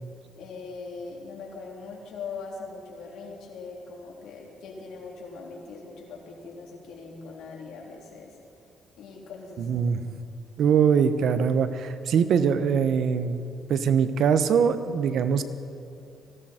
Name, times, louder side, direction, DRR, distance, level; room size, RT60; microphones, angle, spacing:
voice 1, 0.4-8.4 9.0-10.0, left 4 dB, 80° left, -1 dB, 3.3 m, -41 dB
voice 2, 9.6-10.0 10.6-15.4, right 7 dB, 70° right, 11 dB, 0.9 m, -23 dB
19.0 x 16.0 x 4.4 m, 2.7 s
cardioid pair, 90°, 0 cm